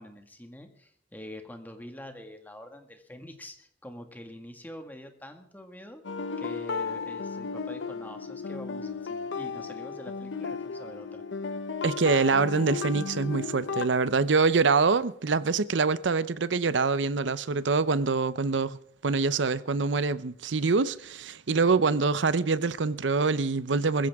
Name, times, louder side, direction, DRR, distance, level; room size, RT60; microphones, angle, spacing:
voice 1, 0.0-6.0 6.4-11.2, left 1 dB, 10° left, 1.8 m, -45 dB
sound 1, 6.0-13.9, left 5 dB, 85° left, 0.7 m, -34 dB
voice 2, 11.8-18.8 19.0-24.1, right 4 dB, 85° right, 0.7 m, -25 dB
21.0 x 15.5 x 3.6 m
head